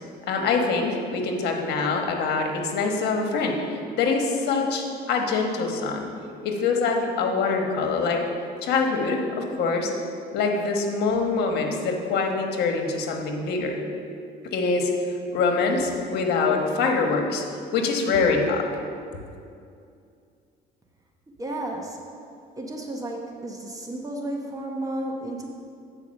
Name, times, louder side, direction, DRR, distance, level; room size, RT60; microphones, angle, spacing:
voice 1, 0.3-6.1 6.4-8.2 8.6-9.9 10.3-13.8 14.5-14.9 15.3-17.4 17.7-18.6, left 4 dB, 75° left, 2 dB, 1.2 m, -24 dB
voice 2, 21.4-22.0 22.6-25.5, right 1 dB, 20° right, 1 dB, 0.9 m, -32 dB
8.4 x 4.9 x 6.4 m, 2.4 s
cardioid pair, 110°, 17 cm